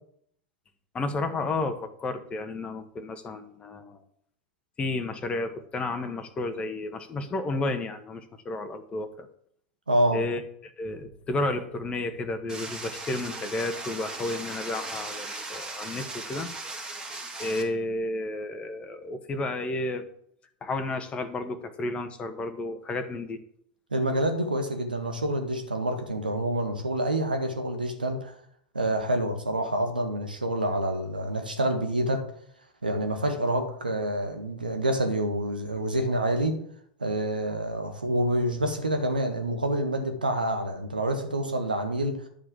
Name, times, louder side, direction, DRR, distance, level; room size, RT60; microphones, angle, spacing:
voice 1, 0.9-4.0 4.8-9.3 10.1-16.5 17.4-20.1 20.6-23.4, left 2 dB, 25° left, 7 dB, 1.4 m, -32 dB
voice 2, 9.9-10.2 23.9-28.3 28.7-32.3 32.8-36.6 37.0-42.2, right 1 dB, 85° right, 6 dB, 1.6 m, -27 dB
sound 1, 12.5-17.6, right 2 dB, 15° right, 2.3 m, -38 dB
11.0 x 4.9 x 7.6 m, 0.66 s
figure-of-eight pair, 85°, 5 cm